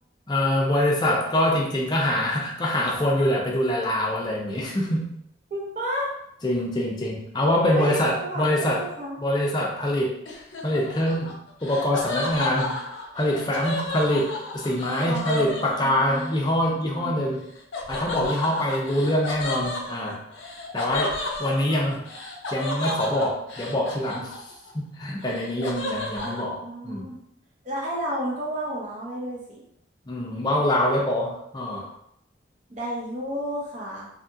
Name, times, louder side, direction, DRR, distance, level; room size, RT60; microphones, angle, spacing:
voice 1, 0.3-5.1 6.4-8.9 9.2-10.2 10.6-17.4 17.9-20.2 20.7-22.0 22.5-24.4 24.7-27.1 30.1-31.9, left 1 dB, 25° left, -2 dB, 0.5 m, -25 dB
voice 2, 5.5-6.1 7.7-9.2 15.1-16.5 16.7-17.3 26.1-27.2 27.6-29.6 32.7-34.1, equal, 40° right, -5 dB, 0.8 m, -32 dB
Laughter, 10.2-16.3 17.7-24.7 25.0-26.4, left 2 dB, 85° left, 0.6 m, -32 dB
2.7 x 2.3 x 2.6 m, 0.73 s
head